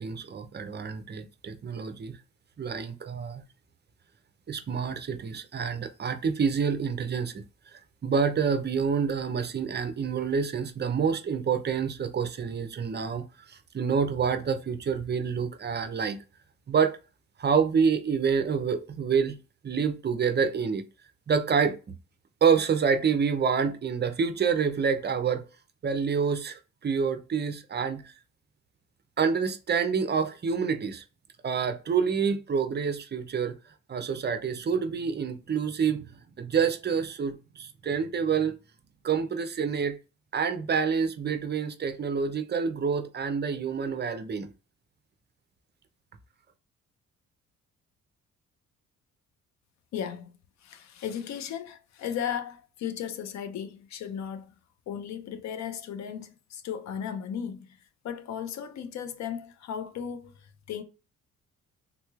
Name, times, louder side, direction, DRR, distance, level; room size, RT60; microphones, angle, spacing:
voice 1, 0.0-2.1 2.6-3.4 4.5-7.3 8.0-13.2 13.5-16.2 16.7-17.0 17.4-19.3 19.6-20.8 21.3-21.8 22.4-25.4 25.8-28.0 29.2-31.0 31.4-33.5 33.9-36.0 36.4-38.6 39.0-40.0 40.3-44.5, right 6 dB, 35° right, 0.5 m, -27 dB
voice 2, 49.9-50.3 50.6-54.5 54.9-57.8 58.0-60.8, left 8 dB, 65° left, 0.5 m, -36 dB
3.6 x 3.0 x 2.3 m
cardioid pair, 90°, 30 cm